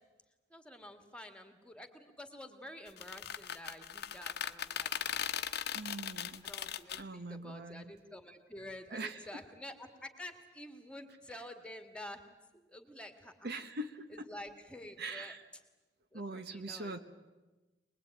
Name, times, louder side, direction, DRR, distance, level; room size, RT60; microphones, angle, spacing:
voice 1, 0.5-5.3 5.9-12.2 12.5-13.5 14.1-15.3 16.1-17.0, left 1 dB, 5° left, 7 dB, 2.0 m, -49 dB
sound 1, 2.9-7.0, left 9 dB, 60° left, 0.9 m, -38 dB
voice 2, 5.7-6.5 6.9-7.9 8.9-9.3 13.4-14.3 15.0-15.5 16.1-17.0, right 2 dB, 60° right, 9 dB, 1.3 m, -42 dB
23.5 x 21.0 x 9.1 m, 1.2 s
head